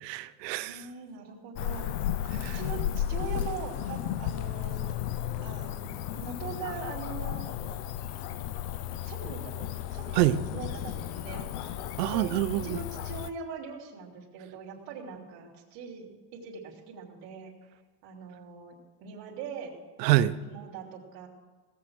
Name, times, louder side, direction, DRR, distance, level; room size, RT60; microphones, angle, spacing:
voice 1, 0.0-0.8 2.3-2.6 10.2-10.4 12.0-12.8 20.0-20.3, right 14 dB, 85° right, 13 dB, 0.8 m, -26 dB
voice 2, 0.6-2.0 2.4-4.8 5.4-7.7 9.0-11.7 12.1-12.3 12.6-17.5 18.0-19.7 20.4-21.3, right 5 dB, 45° right, -2 dB, 2.8 m, -42 dB
Cricket / Motor vehicle (road), 1.6-13.3, left 11 dB, 40° left, 0.5 m, -34 dB
17.5 x 7.3 x 6.2 m, 1.4 s
cardioid pair, 170°, 48 cm